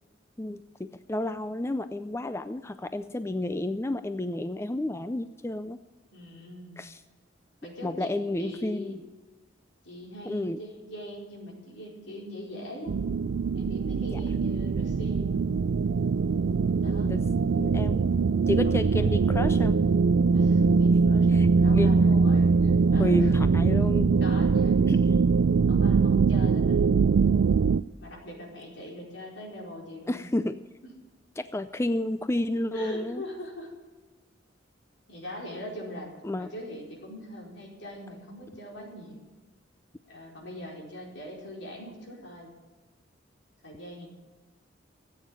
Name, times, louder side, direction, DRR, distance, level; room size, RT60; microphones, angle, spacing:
voice 1, 0.4-5.8 6.8-7.0 7.8-9.0 10.3-10.6 14.1-14.2 16.8-17.3 17.6-18.1 18.5-19.8 21.3-21.9 23.0-24.3 24.9-25.0 30.1-30.6 31.4-33.2 36.2-36.5, left 1 dB, 15° left, 11 dB, 0.4 m, -31 dB
voice 2, 6.1-6.8 7.6-9.0 9.8-13.0 13.5-15.5 16.8-17.1 18.6-19.2 20.3-23.3 24.2-24.9 25.7-26.8 28.0-30.3 32.7-33.7 35.1-36.1 36.4-39.2 40.1-42.5 43.6-44.1, left 1 dB, 75° left, -1 dB, 4.6 m, -42 dB
sound 1, 12.9-27.8, right 4 dB, 80° right, 0.4 m, -22 dB
14.0 x 8.7 x 8.8 m, 1.2 s
head